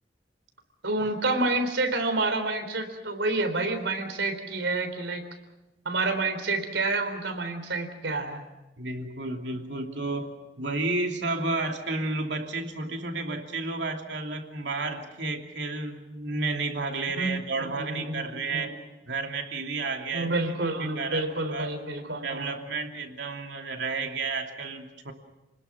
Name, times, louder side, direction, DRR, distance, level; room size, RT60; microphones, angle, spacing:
voice 1, 0.8-5.2 5.9-8.4 17.2-17.4 17.7-18.7 20.1-22.6, right 2 dB, 90° right, 7 dB, 3.9 m, -29 dB
voice 2, 8.8-10.3 10.6-18.8 19.1-20.5 21.0-21.7 22.2-25.1, right 3 dB, 75° right, 3 dB, 2.9 m, -31 dB
29.5 x 20.5 x 6.0 m, 0.99 s
head